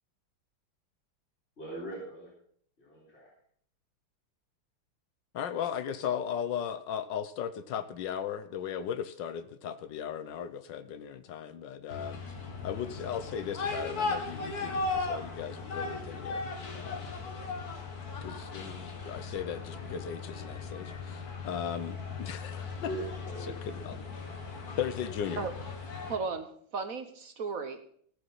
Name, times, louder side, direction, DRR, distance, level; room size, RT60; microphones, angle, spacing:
voice 1, 1.6-2.3 2.8-3.3 22.8-24.0, right 1 dB, 30° left, -5 dB, 4.0 m, -41 dB
voice 2, 5.3-12.2 12.6-17.2 18.2-22.9 23.4-24.0 24.8-25.5, left 8 dB, 65° left, 11 dB, 1.4 m, -37 dB
sound 1, 11.9-26.2, left 3 dB, 50° left, 2.0 m, -37 dB
voice 3, 26.1-26.5 26.7-27.8, right 4 dB, 55° right, 8 dB, 1.1 m, -34 dB
16.0 x 6.9 x 5.6 m, 0.62 s
omnidirectional pair, 2.3 m